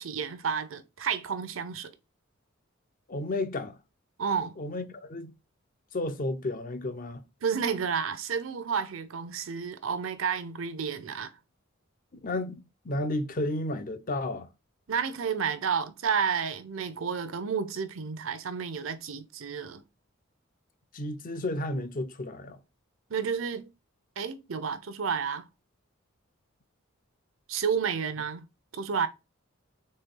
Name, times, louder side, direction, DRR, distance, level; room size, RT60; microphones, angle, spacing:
voice 1, 0.0-1.9 4.2-4.5 7.4-11.3 14.9-19.8 23.1-23.7 24.2-25.4 27.5-28.5 28.7-29.1, right 6 dB, 75° right, 0.7 m, -31 dB
voice 2, 3.1-3.8 4.6-5.3 5.9-7.2 12.2-14.5 20.9-22.6, left 1 dB, 45° left, 0.6 m, -32 dB
4.2 x 3.2 x 3.7 m
head